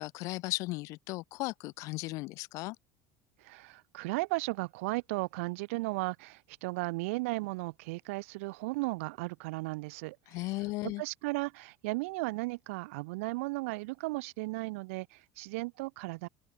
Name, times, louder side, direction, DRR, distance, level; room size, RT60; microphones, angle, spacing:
voice 1, 0.0-2.7 10.3-11.0, left 21 dB, 50° left, 1.6 m, -36 dB
voice 2, 3.4-10.2 11.0-16.3, right 24 dB, 85° right, 1.0 m, -35 dB
open air
cardioid pair, 175°, 7 cm